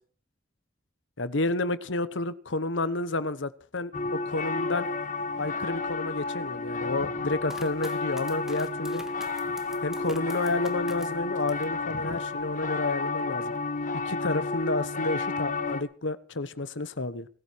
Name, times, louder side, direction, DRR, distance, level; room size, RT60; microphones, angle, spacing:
voice 1, 1.2-4.9 5.4-9.0 9.8-13.6 14.0-17.3, left 2 dB, 85° left, 14 dB, 1.2 m, -30 dB
sound 1, 3.9-15.8, left 3 dB, 45° left, 1.4 m, -31 dB
sound 2, 7.5-11.8 12.2-12.8, equal, 5° right, 1.8 m, -47 dB
19.0 x 14.0 x 4.7 m, 0.42 s
head